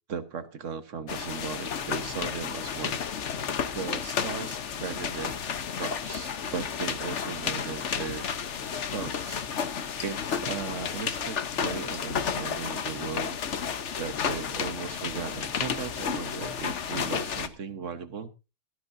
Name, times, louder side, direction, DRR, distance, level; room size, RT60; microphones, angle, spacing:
voice 1, 0.1-3.0 3.7-5.4 5.7-8.3 8.8-9.5 10.0-13.4 14.0-18.3, right 6 dB, 60° right, 11 dB, 1.5 m, -37 dB
sound 1, 1.1-17.5, left 7 dB, 55° left, 1.2 m, -32 dB
17.0 x 12.5 x 2.7 m, 0.28 s
omnidirectional pair, 1.5 m